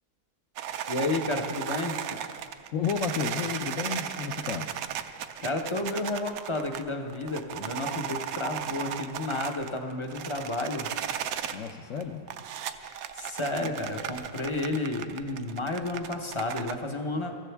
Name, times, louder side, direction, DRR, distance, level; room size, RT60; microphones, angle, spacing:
sound 1, 0.6-11.7 12.0-16.7, right 9 dB, 70° right, 1.0 m, -36 dB
voice 1, 0.9-2.0 5.4-10.9 13.1-17.5, left 2 dB, 30° left, 3 dB, 0.6 m, -31 dB
voice 2, 2.7-4.7 11.5-12.2 13.6-13.9, left 6 dB, 65° left, 3 dB, 1.0 m, -32 dB
23.5 x 14.5 x 3.4 m, 2.2 s
omnidirectional pair, 1.7 m